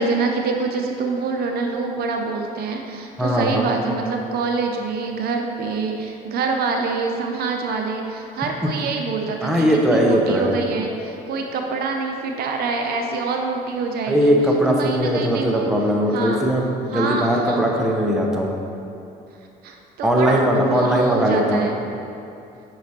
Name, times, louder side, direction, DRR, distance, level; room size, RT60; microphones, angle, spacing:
voice 1, 0.0-14.4 14.8-15.7 16.1-16.4 16.9-17.7 19.6-21.8, right 4 dB, 65° right, 3 dB, 0.6 m, -26 dB
voice 2, 3.2-3.7 8.6-8.7 9.4-10.5 14.1-18.5 20.0-21.7, equal, 5° right, -1 dB, 0.8 m, -19 dB
5.9 x 4.8 x 4.2 m, 2.7 s
cardioid pair, 110°, 17 cm